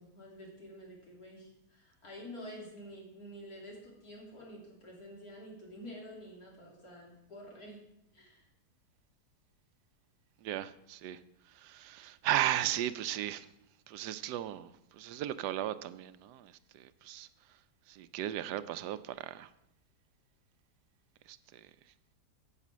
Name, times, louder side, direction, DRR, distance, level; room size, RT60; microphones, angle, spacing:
voice 1, 0.0-7.8 8.1-8.5, equal, 60° left, -3 dB, 3.5 m, -49 dB
voice 2, 10.4-11.2 11.5-13.5 13.9-17.3 17.9-19.5 21.3-21.6, right 12 dB, 80° right, 14 dB, 1.2 m, -36 dB
9.7 x 8.3 x 6.1 m, 0.83 s
omnidirectional pair, 1.8 m